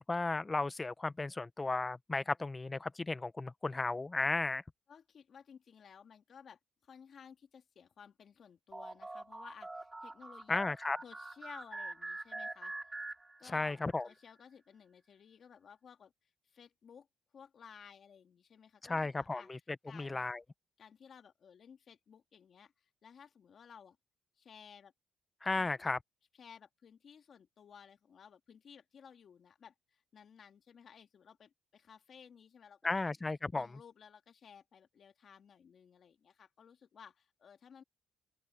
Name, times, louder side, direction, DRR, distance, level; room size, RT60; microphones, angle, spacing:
voice 1, 0.0-4.6 10.5-11.0 13.5-14.1 18.8-19.6 19.9-20.4 25.4-26.0 32.8-33.7, left 3 dB, 20° left, 0.8 m, -34 dB
voice 2, 4.9-10.6 11.0-12.7 13.4-16.1 16.4-17.1 17.3-19.5 19.8-20.3 20.8-24.0 24.4-24.9 25.6-25.9 26.4-33.1 33.5-37.8, left 7 dB, 55° left, 2.2 m, -57 dB
sound 1, 8.7-13.8, right 2 dB, 15° right, 2.8 m, -45 dB
open air
cardioid pair, 90°, 0 cm